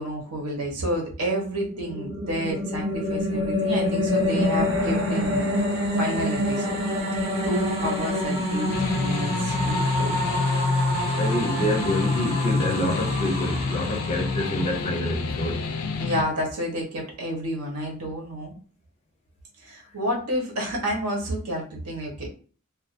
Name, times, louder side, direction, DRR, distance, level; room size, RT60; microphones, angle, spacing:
voice 1, 0.0-5.5 5.9-6.8 7.4-10.4 16.0-18.6 19.6-22.3, equal, 90° right, 1.1 m, -30 dB
sound 1, 1.5-14.9, left 1 dB, 25° right, 0.6 m, -27 dB
sound 2, 4.1-8.3, right 1 dB, 60° right, 0.8 m, -40 dB
sound 3, 8.7-16.2, left 4 dB, 85° left, 0.4 m, -27 dB
voice 2, 11.2-15.7, left 1 dB, 30° left, 0.4 m, -27 dB
2.4 x 2.4 x 2.5 m
head